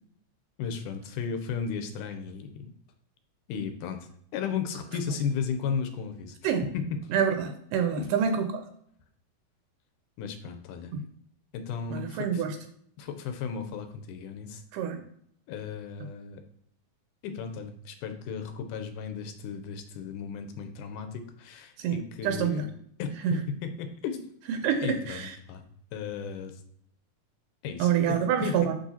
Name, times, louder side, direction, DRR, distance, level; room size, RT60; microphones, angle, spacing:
voice 1, 0.6-2.7 3.5-4.0 4.3-6.9 8.0-8.1 10.2-10.9 11.5-12.4 13.0-14.6 15.5-16.4 17.2-22.6 23.0-24.3 24.8-25.6 25.9-26.6 27.6-28.7, left 6 dB, 85° left, 7 dB, 2.1 m, -35 dB
voice 2, 7.1-8.6 10.9-11.0 11.9-12.6 14.7-15.0 21.8-22.0 22.2-22.7 23.2-23.4 24.5-25.3 27.8-28.8, right 8 dB, 85° right, 7 dB, 2.2 m, -27 dB
6.2 x 5.8 x 2.8 m, 0.65 s
omnidirectional pair, 3.7 m